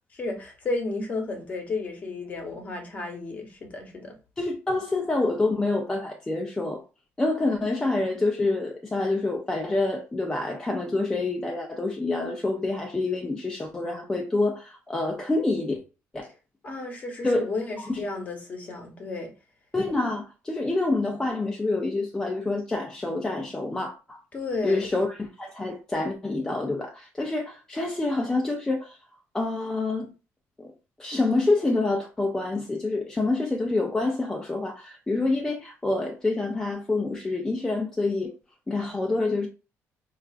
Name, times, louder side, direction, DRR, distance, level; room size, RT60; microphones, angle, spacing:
voice 1, 0.1-4.2 16.6-19.3 24.3-24.9, left 3 dB, 30° left, 0.9 m, -32 dB
voice 2, 4.4-6.8 7.2-15.8 16.1-16.3 17.2-17.5 17.8-18.0 19.7-24.2 24.6-29.0 29.3-30.1 30.6-30.7 31.0-38.3 38.7-39.5, left 2 dB, 10° left, 0.4 m, -27 dB
4.4 x 2.4 x 2.4 m
cardioid pair, 150°, 5 cm